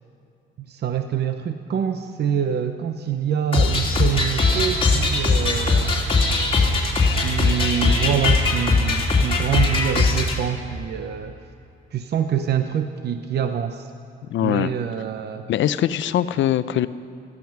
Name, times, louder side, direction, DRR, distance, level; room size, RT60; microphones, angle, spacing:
voice 1, 0.6-6.3 7.0-11.4 11.9-13.9 14.4-15.5, right 8 dB, 55° right, 8 dB, 0.8 m, -26 dB
sound 1, 3.5-10.4, left 3 dB, 25° left, 2.9 m, -20 dB
voice 2, 14.3-14.7 15.5-16.9, left 11 dB, 70° left, 14 dB, 0.6 m, -22 dB
17.0 x 14.0 x 5.9 m, 2.7 s
cardioid pair, 90°, 20 cm